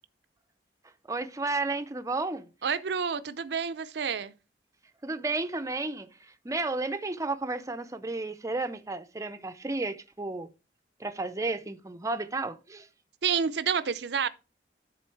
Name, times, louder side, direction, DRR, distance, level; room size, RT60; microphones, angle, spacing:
voice 1, 1.1-2.5 5.0-10.5 11.0-12.9, right 3 dB, 20° right, 0.5 m, -32 dB
voice 2, 2.6-4.3 13.2-14.3, right 6 dB, 70° right, 0.5 m, -29 dB
10.5 x 3.8 x 4.5 m
head